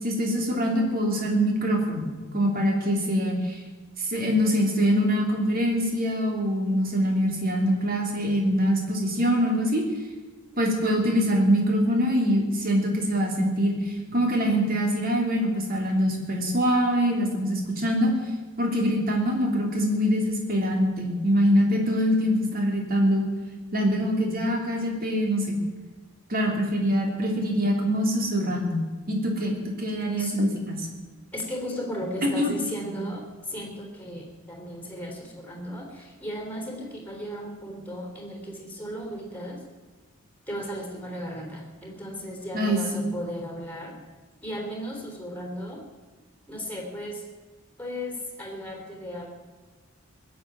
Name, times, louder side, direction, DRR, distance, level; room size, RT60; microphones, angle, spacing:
voice 1, 0.0-3.6 4.0-9.8 10.6-13.7 14.1-18.1 18.6-23.2 23.7-25.6 26.3-28.8 29.1-30.9 32.2-32.5 42.5-42.8, equal, 45° right, 1 dB, 3.3 m, -24 dB
voice 2, 31.3-39.6 40.5-43.9 44.4-45.8 46.5-47.2 47.8-49.3, equal, 5° left, 1 dB, 3.4 m, -35 dB
20.0 x 7.6 x 9.4 m, 1.3 s
head